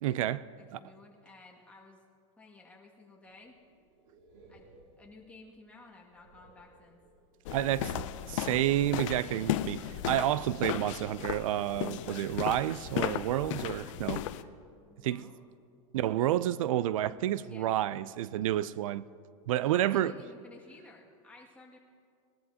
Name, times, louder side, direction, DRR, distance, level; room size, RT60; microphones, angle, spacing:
voice 1, 0.0-0.4 0.7-0.8 7.5-14.2 15.0-15.3 15.9-19.1 19.5-20.1, right 13 dB, 90° right, 0.4 m, -30 dB
voice 2, 0.5-2.0 2.4-3.6 4.5-4.6 5.0-7.0 14.8-15.4 17.4-18.1 19.6-21.8, left 3 dB, 10° left, 2.1 m, -54 dB
sound 1, 3.2-7.5 8.0-13.6, right 2 dB, 65° right, 3.1 m, -58 dB
sound 2, 7.5-14.4, left 13 dB, 70° left, 0.6 m, -35 dB
21.0 x 12.5 x 2.8 m
supercardioid pair, 135°, 17 cm